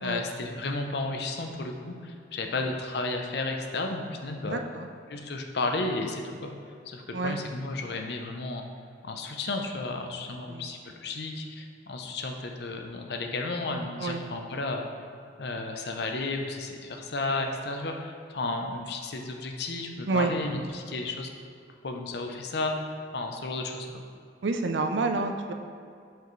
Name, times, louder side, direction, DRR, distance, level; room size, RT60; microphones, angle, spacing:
voice 1, 0.0-4.6 5.1-6.5 6.9-8.6 9.0-14.9 15.4-21.3 21.8-24.0, left 2 dB, 60° left, 3 dB, 0.6 m, -33 dB
voice 2, 4.5-4.9 7.1-7.4 10.5-10.7 14.0-14.2 20.1-20.3 24.4-25.5, right 3 dB, 80° right, 5 dB, 0.5 m, -29 dB
7.9 x 4.8 x 3.2 m, 2.4 s
head